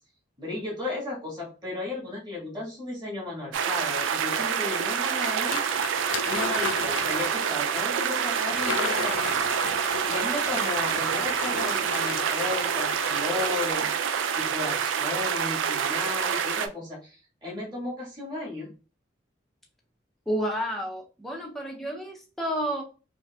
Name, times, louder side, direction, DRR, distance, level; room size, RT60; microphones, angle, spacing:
voice 1, 0.4-5.8 6.2-9.4 9.7-13.9 14.3-18.7, left 2 dB, 25° right, -5 dB, 1.6 m, -34 dB
sound 1, 3.5-16.7, right 7 dB, 85° right, 0.4 m, -27 dB
sound 2, 5.4-7.5 8.3-13.7, left 7 dB, 80° left, 0.3 m, -35 dB
voice 2, 20.3-22.8, equal, ahead, -1 dB, 0.5 m, -30 dB
4.9 x 2.5 x 2.3 m, 0.35 s
head